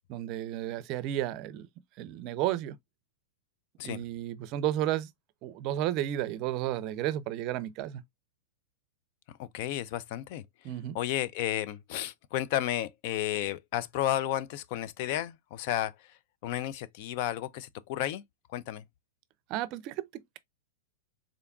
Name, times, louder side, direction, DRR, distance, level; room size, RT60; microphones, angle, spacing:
voice 1, 0.1-1.7 2.0-2.8 3.8-5.1 5.4-8.0 10.6-11.0 19.5-20.4, right 13 dB, 40° right, 0.5 m, -32 dB
voice 2, 9.4-10.4 10.9-16.2 16.4-18.2 18.5-18.8, left 12 dB, 50° left, 0.4 m, -32 dB
3.7 x 3.5 x 2.3 m
hypercardioid pair, 135°, 0 cm